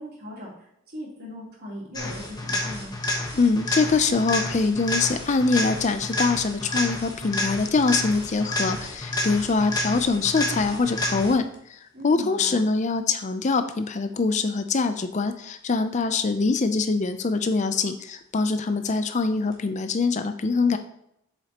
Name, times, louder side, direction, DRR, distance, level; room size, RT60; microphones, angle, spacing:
voice 1, 0.0-2.9 11.9-12.6, left 1 dB, 50° right, -4 dB, 3.2 m, -39 dB
sound 1, 1.9-11.6 19.5-19.6, left 1 dB, 20° left, 1.2 m, -30 dB
voice 2, 3.3-20.8, left 4 dB, 35° left, 8 dB, 0.4 m, -24 dB
8.1 x 7.4 x 2.9 m, 0.76 s
head